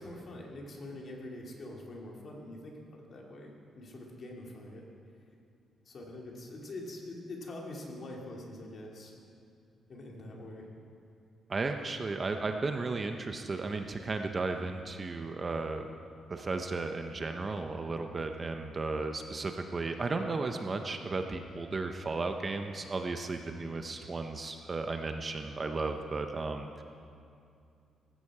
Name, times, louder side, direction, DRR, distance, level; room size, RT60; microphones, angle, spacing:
voice 1, 0.0-4.8 5.9-9.1 9.9-10.7, left 1 dB, 40° left, -1 dB, 2.5 m, -44 dB
voice 2, 11.5-15.8 16.3-26.8, right 3 dB, 25° right, 5 dB, 0.7 m, -34 dB
18.5 x 15.5 x 4.8 m, 2.5 s
cardioid pair, 170°, 0 cm